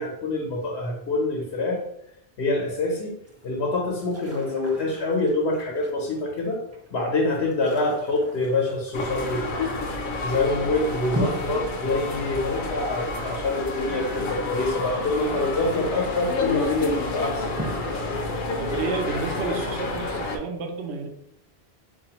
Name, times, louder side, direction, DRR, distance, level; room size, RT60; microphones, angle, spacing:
voice 1, 0.0-1.8 2.4-3.1 3.4-6.6 6.9-9.6 10.2-17.4, left 2 dB, 80° left, -2 dB, 1.0 m, -26 dB
sound 1, 3.2-20.1, right 1 dB, 20° right, 0.4 m, -41 dB
sound 2, 8.9-20.4, left 2 dB, 60° left, 0.6 m, -29 dB
voice 2, 18.6-21.1, right 4 dB, 80° right, 4 dB, 0.9 m, -31 dB
3.9 x 2.6 x 2.9 m, 0.76 s
omnidirectional pair, 1.1 m